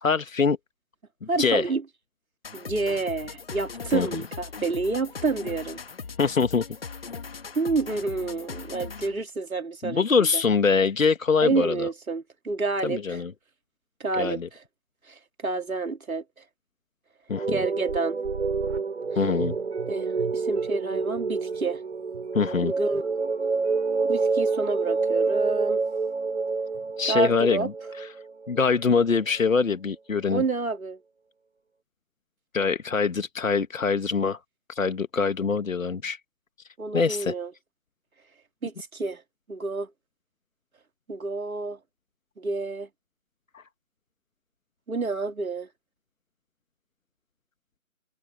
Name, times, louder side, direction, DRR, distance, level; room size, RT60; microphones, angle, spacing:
voice 1, 0.0-0.6 1.4-1.6 3.9-4.2 6.2-6.6 9.8-11.9 12.8-13.3 14.2-14.5 17.3-17.5 19.2-19.6 22.3-22.7 27.0-27.7 28.0-28.1 28.5-30.4 32.5-34.4 34.7-36.2 36.9-37.3 43.5-43.6, left 5 dB, 70° left, 1.9 m, -24 dB
voice 2, 1.3-1.8 2.5-5.8 7.6-10.3 11.4-13.2 14.0-14.4 15.1-16.2 17.5-18.2 19.9-21.8 22.6-23.0 24.0-25.8 27.1-27.7 30.3-31.0 36.8-37.5 38.6-39.2 39.5-39.9 41.1-41.8 42.4-42.9 44.9-45.7, right 3 dB, 80° right, 3.4 m, -29 dB
sound 1, 2.4-9.2, left 5 dB, 45° left, 2.1 m, -39 dB
sound 2, 17.4-29.0, right 4 dB, 55° right, 7.6 m, -28 dB
figure-of-eight pair, 170°, 42 cm